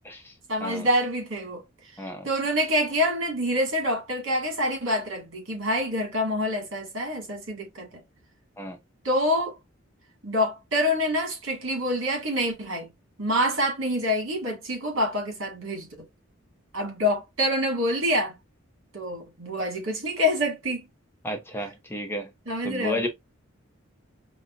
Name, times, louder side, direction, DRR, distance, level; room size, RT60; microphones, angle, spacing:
voice 1, 0.5-1.6 2.2-8.0 9.0-9.6 10.2-12.9 13.2-15.9 16.7-18.3 18.9-20.9 22.5-23.0, equal, 75° right, 1.8 m, -26 dB
voice 2, 21.2-22.3 22.6-23.1, left 1 dB, 10° left, 0.6 m, -32 dB
5.2 x 2.1 x 2.5 m
head